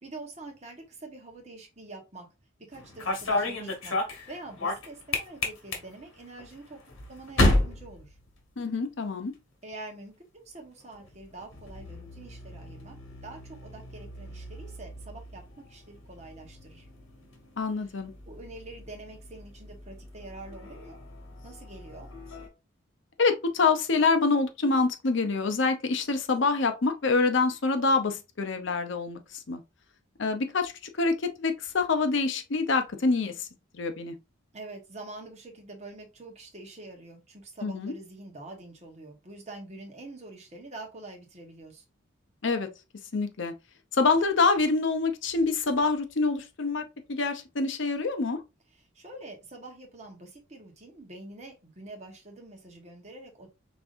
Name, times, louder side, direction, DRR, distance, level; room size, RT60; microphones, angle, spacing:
voice 1, 0.0-2.3 2.7-6.8 7.1-8.2 9.6-13.0 13.2-16.9 17.8-17.9 18.2-21.0 21.4-22.1 34.5-41.8 48.7-53.5, right 2 dB, 30° right, 1.1 m, -45 dB
sound 1, 2.7-8.9 9.2-9.7 10.8-22.5, left 2 dB, 85° left, 1.4 m, -33 dB
voice 2, 8.6-9.3 17.6-18.1 23.2-29.6 30.2-30.7 31.0-33.5 33.7-34.1 37.6-37.9 42.4-42.7 43.1-43.5 43.9-46.8 47.1-48.4, left 4 dB, 65° left, 0.6 m, -26 dB
5.2 x 3.5 x 2.6 m
head